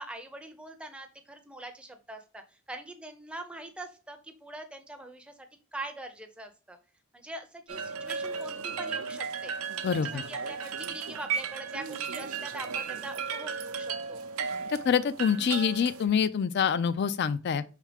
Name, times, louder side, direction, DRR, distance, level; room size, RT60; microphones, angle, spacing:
voice 1, 0.0-2.4 2.7-5.3 5.7-6.8 7.1-9.5 10.0-14.2, right 2 dB, 5° right, 0.5 m, -43 dB
sound 1, 7.7-16.1, right 6 dB, 85° right, 0.6 m, -35 dB
voice 2, 9.8-10.2 14.7-17.6, left 7 dB, 50° left, 0.4 m, -26 dB
4.9 x 3.2 x 3.3 m
head